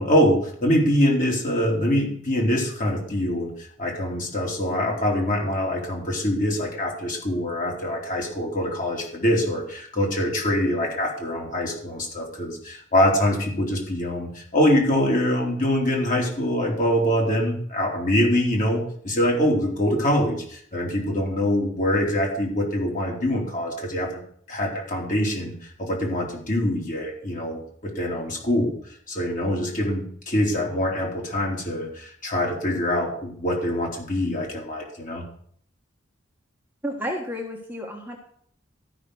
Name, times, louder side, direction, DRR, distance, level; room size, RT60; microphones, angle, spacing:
voice 1, 0.0-24.2 24.5-28.7 29.1-35.2, left 1 dB, 40° left, -1 dB, 3.1 m, -24 dB
voice 2, 36.8-38.2, equal, 10° right, 0 dB, 1.4 m, -31 dB
12.5 x 5.8 x 6.2 m, 0.62 s
head